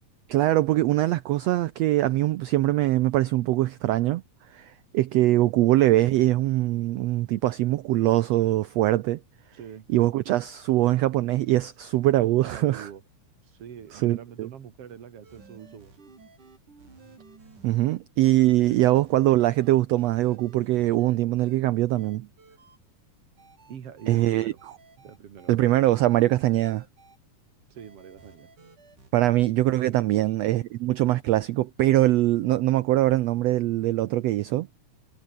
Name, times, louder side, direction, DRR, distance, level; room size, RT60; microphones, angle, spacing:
voice 1, 0.3-4.2 4.5-9.2 9.9-12.9 13.9-14.5 17.6-22.3 24.1-24.5 25.5-26.8 29.1-34.7, right 15 dB, 90° right, 1.4 m, -22 dB
voice 2, 9.5-9.9 12.4-13.0 13.4-16.0 23.7-24.6 25.0-25.5 27.7-28.5 29.8-30.3, right 8 dB, 50° right, 2.5 m, -44 dB
sound 1, 15.2-18.0 18.4-21.6 22.0-22.8 23.4-27.2 27.8-29.1, right 4 dB, 65° right, 7.5 m, -54 dB
omnidirectional pair, 3.8 m